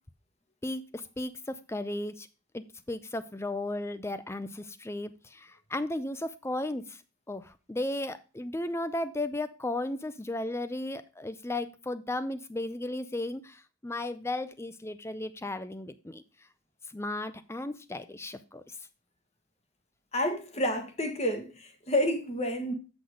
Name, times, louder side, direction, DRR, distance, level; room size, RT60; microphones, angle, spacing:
voice 1, 0.6-2.3 2.5-7.0 7.3-16.2 16.9-18.8, left 1 dB, 10° left, 0.5 m, -35 dB
voice 2, 20.1-22.7, left 1 dB, 30° left, 1.4 m, -29 dB
7.9 x 6.0 x 5.1 m
head